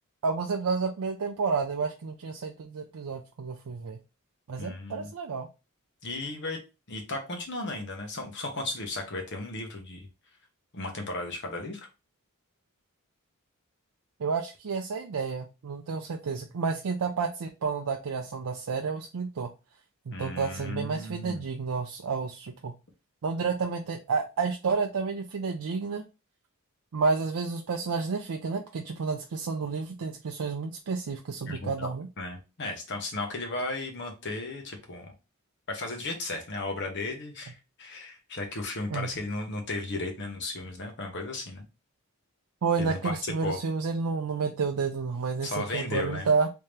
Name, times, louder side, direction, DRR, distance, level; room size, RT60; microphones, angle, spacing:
voice 1, 0.2-4.0 4.5-5.5 14.2-19.5 20.1-22.7 23.2-26.0 26.9-32.1 38.9-39.1 42.6-46.5, right 5 dB, 85° right, 3 dB, 0.5 m, -30 dB
voice 2, 4.6-5.1 6.0-6.6 6.9-10.1 10.7-11.8 20.1-21.4 31.5-31.9 32.2-35.1 35.7-41.7 42.8-43.2 43.4-43.6 45.4-46.3, left 2 dB, 55° left, 3 dB, 1.0 m, -35 dB
3.4 x 2.8 x 3.3 m, 0.28 s
head